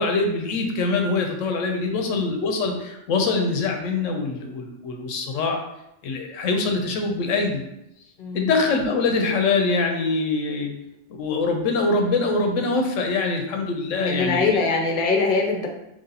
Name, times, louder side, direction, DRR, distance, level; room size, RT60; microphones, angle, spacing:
voice 1, 0.0-5.6 6.0-7.6 8.3-10.7 11.2-14.4, left 3 dB, 90° left, 3 dB, 1.0 m, -23 dB
voice 2, 14.0-15.7, left 4 dB, 55° left, 2 dB, 0.7 m, -23 dB
3.1 x 2.8 x 3.9 m, 0.85 s
omnidirectional pair, 1.3 m